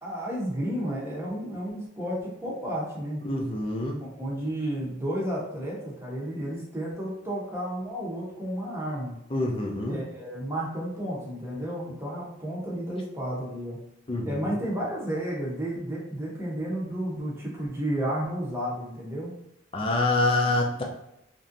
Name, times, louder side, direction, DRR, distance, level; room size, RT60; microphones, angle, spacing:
voice 1, 0.0-3.2 4.0-9.2 9.9-13.8 14.2-19.3, right 1 dB, 15° right, -5 dB, 0.8 m, -32 dB
voice 2, 3.2-3.9 9.3-10.0 14.1-14.6 19.7-20.8, left 2 dB, 25° left, 0 dB, 0.5 m, -26 dB
3.2 x 2.6 x 2.6 m, 0.84 s
head